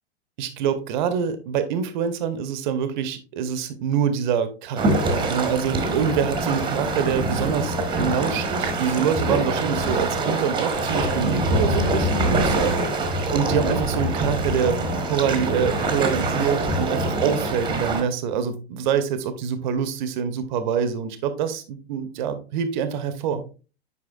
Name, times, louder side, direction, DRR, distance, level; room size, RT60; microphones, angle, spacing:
voice 1, 0.4-14.8 15.1-23.4, right 7 dB, 45° right, 10 dB, 0.9 m, -25 dB
sound 1, 4.8-18.0, right 2 dB, 15° right, 1.2 m, -24 dB
8.1 x 5.3 x 2.4 m, 0.33 s
figure-of-eight pair, 95°, 32 cm